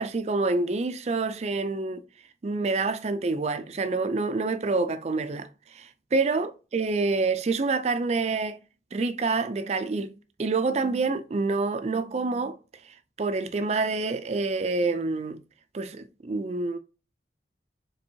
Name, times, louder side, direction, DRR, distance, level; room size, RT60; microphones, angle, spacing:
voice 1, 0.0-2.1 2.4-5.5 5.7-8.6 8.9-12.6 13.2-15.4 15.7-16.8, right 3 dB, 35° right, 0.4 m, -27 dB
4.4 x 3.4 x 2.7 m
head